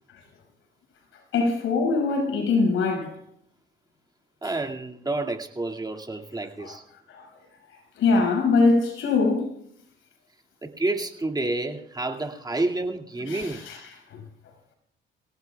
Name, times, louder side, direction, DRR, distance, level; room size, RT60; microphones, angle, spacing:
voice 1, 1.3-3.2 4.4-4.5 6.6-6.8 7.1-7.3 8.0-9.5 13.2-14.2, left 3 dB, 80° left, 6.0 m, -23 dB
voice 2, 4.4-6.8 10.6-13.6, right 2 dB, 20° right, 2.2 m, -29 dB
25.0 x 17.5 x 2.4 m
cardioid pair, 90°, 20 cm